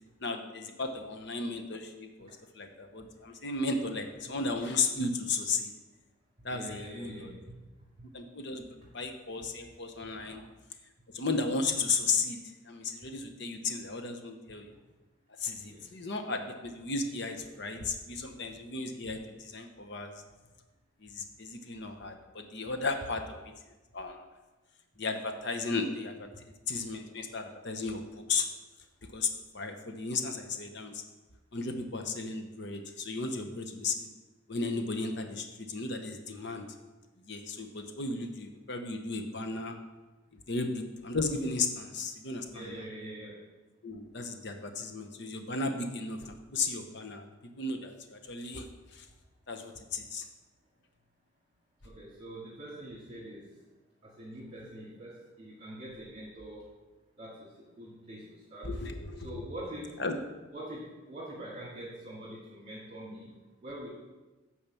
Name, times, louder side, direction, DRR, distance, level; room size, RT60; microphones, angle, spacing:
voice 1, 0.2-2.3 2.5-5.7 6.4-7.3 8.1-8.7 8.9-10.4 11.1-12.4 12.7-14.7 15.4-20.1 21.0-23.4 23.9-24.2 25.0-26.3 26.7-28.5 29.1-31.0 31.5-34.1 34.5-36.7 37.3-39.7 40.5-42.8 43.8-47.3 47.6-48.7 48.9-49.0 49.5-50.2 58.6-59.4 60.0-60.2, left 3 dB, 55° left, 6 dB, 0.9 m, -34 dB
voice 2, 6.5-7.5 15.6-15.9 42.5-43.4 51.8-53.5 54.0-56.7 57.2-58.7 59.2-60.0 60.5-63.3 63.6-63.9, right 1 dB, 30° right, -7 dB, 2.2 m, -44 dB
8.9 x 4.8 x 6.9 m, 1.2 s
head